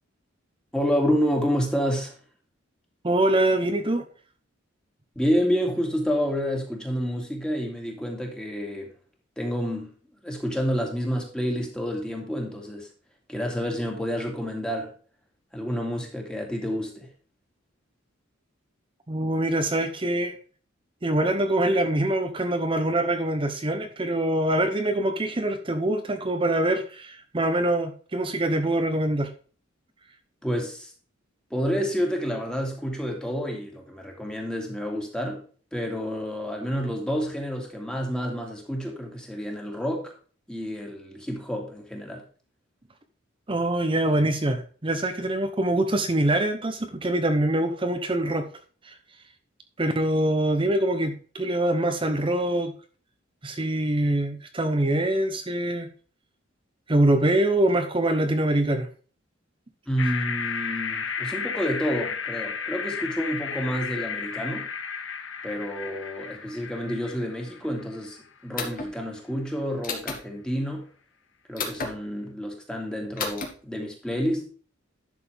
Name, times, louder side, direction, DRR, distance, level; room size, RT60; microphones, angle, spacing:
voice 1, 0.7-2.1 5.2-8.9 9.4-9.9 10.2-12.9 13.3-14.9 15.5-17.1 30.4-30.9 31.5-35.4 35.7-40.1 40.5-42.2 59.9-64.7 65.4-68.2 68.4-70.9 71.5-74.4, equal, 5° left, 0 dB, 2.4 m, -29 dB
voice 2, 3.0-4.0 19.1-20.3 21.0-29.3 43.5-48.5 48.8-48.9 49.8-52.7 53.4-55.9 56.9-58.9, right 1 dB, 25° right, 6 dB, 0.8 m, -24 dB
sound 1, 60.0-68.2, left 6 dB, 65° left, 1.3 m, -33 dB
sound 2, 68.6-68.9 69.8-70.2 71.6-71.9 73.2-73.5, left 4 dB, 45° left, 2.1 m, -31 dB
11.0 x 6.6 x 3.4 m, 0.41 s
head